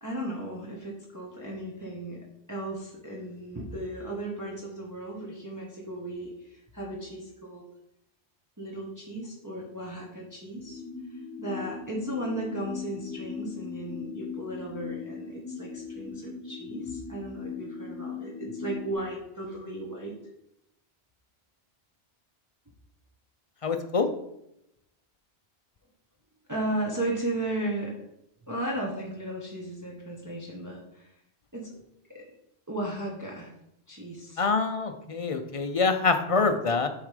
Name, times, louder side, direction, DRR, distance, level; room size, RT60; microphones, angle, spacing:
voice 1, 0.0-2.2 2.5-7.6 8.6-10.8 11.1-20.1 26.5-28.0 28.5-31.1 31.5-31.8 32.1-32.2 32.7-33.5 33.9-34.5, right 1 dB, 20° right, -3 dB, 1.0 m, -35 dB
sound 1, 10.6-18.9, left 5 dB, 80° right, 1.5 m, -39 dB
voice 2, 23.6-24.1 34.4-36.9, left 4 dB, 40° left, 8 dB, 0.5 m, -25 dB
7.0 x 3.7 x 4.9 m, 0.80 s
omnidirectional pair, 1.1 m